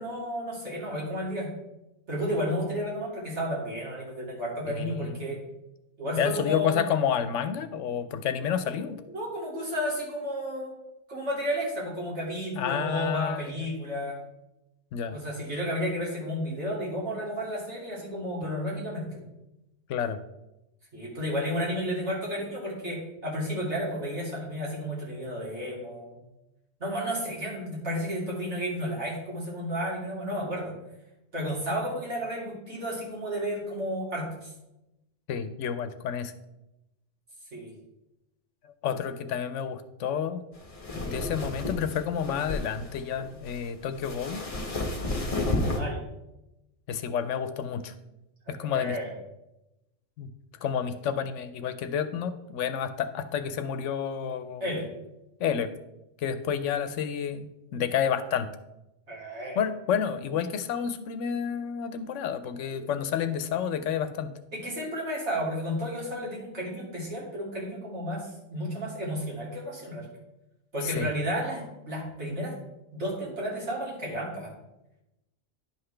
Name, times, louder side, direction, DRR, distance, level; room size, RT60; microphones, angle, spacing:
voice 1, 0.0-1.5 2.1-5.4 6.0-6.8 9.1-10.7 11.1-14.2 15.1-19.2 20.9-26.2 26.8-30.7 31.3-34.5 37.5-37.7 45.8-46.0 48.4-49.1 54.6-54.9 59.1-59.6 62.7-63.1 64.5-70.1 70.7-72.5 72.9-74.5, equal, 70° right, -4 dB, 2.8 m, -32 dB
voice 2, 4.7-5.3 6.2-9.0 12.6-13.7 14.9-15.2 19.9-20.2 35.3-36.3 38.6-40.4 40.9-44.4 46.9-47.9 48.5-49.0 50.2-50.3 50.6-54.6 55.4-55.7 56.2-58.5 59.6-64.3 70.8-71.1, left 8 dB, 85° left, 10 dB, 0.9 m, -30 dB
sound 1, 40.5-45.8, left 2 dB, 30° left, 1.0 m, -32 dB
10.5 x 5.7 x 3.3 m, 0.93 s
omnidirectional pair, 1.2 m